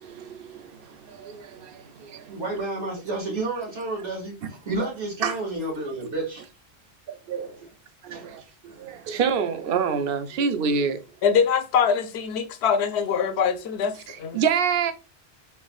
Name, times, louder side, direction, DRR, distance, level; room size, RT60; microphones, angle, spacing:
voice 1, 0.0-2.4 5.2-5.4 7.1-7.7 8.0-11.0 13.9-14.9, right 6 dB, 60° right, 0.8 m, -27 dB
voice 2, 2.3-4.3 4.7-6.4 8.1-8.3, right 2 dB, 80° right, 2.1 m, -30 dB
voice 3, 11.2-14.4, left 7 dB, 75° left, 0.8 m, -23 dB
4.6 x 4.0 x 2.3 m
omnidirectional pair, 1.2 m